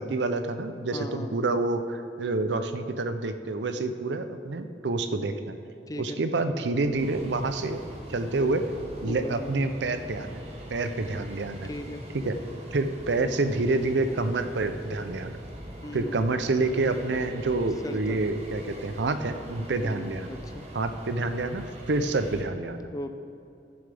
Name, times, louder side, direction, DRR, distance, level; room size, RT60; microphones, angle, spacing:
voice 1, 0.0-5.6 6.0-7.8 8.1-8.6 9.0-10.4 10.7-11.7 12.2-12.4 12.7-15.4 15.9-20.3 20.7-22.9, right 3 dB, 75° right, 9 dB, 0.6 m, -28 dB
voice 2, 0.9-1.3 5.9-6.2 9.0-9.6 11.6-12.0 15.8-16.1 17.8-18.2 19.8-20.7 22.9-23.1, left 1 dB, 20° left, 8 dB, 0.4 m, -38 dB
sound 1, 6.8-22.4, equal, 35° right, 1.3 m, -42 dB
14.5 x 7.0 x 3.5 m, 2.6 s
head